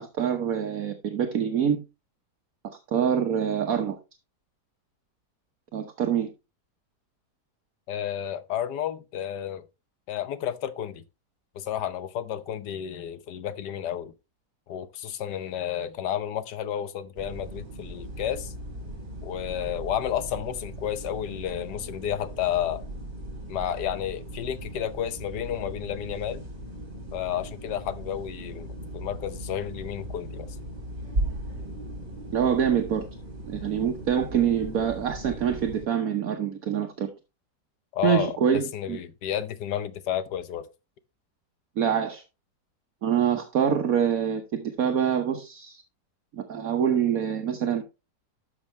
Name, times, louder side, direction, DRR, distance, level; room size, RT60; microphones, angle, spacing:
voice 1, 0.0-1.8 2.9-4.0 5.7-6.3 32.3-33.1 33.5-37.1 38.0-39.0 41.8-42.2 43.0-45.8 46.3-47.8, right 8 dB, 60° right, 1.4 m, -25 dB
voice 2, 7.9-9.6 10.1-11.0 11.5-14.1 14.7-18.5 19.2-22.9 23.5-26.4 27.1-30.6 37.9-40.7, left 10 dB, 80° left, 1.5 m, -31 dB
sound 1, 17.1-35.8, right 1 dB, 40° right, 3.6 m, -38 dB
12.5 x 6.4 x 3.2 m
omnidirectional pair, 1.8 m